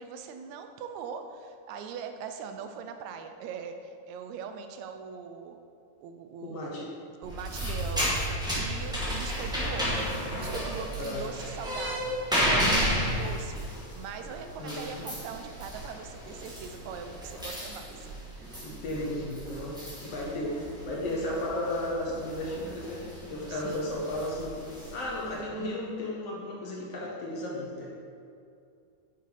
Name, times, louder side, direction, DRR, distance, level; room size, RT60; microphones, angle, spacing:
voice 1, 0.0-5.6 6.0-6.9 7.2-13.7 14.0-18.1 18.3-18.6 23.5-24.0, right 6 dB, 75° right, 7 dB, 1.9 m, -41 dB
voice 2, 6.4-6.9 9.0-9.1 11.0-11.3 14.6-15.1 18.5-24.5 24.9-27.9, left 1 dB, 60° left, -3 dB, 2.1 m, -34 dB
sound 1, 7.2-25.4, equal, ahead, 1.7 m, -33 dB
9.2 x 6.9 x 5.0 m, 2.5 s
omnidirectional pair, 3.6 m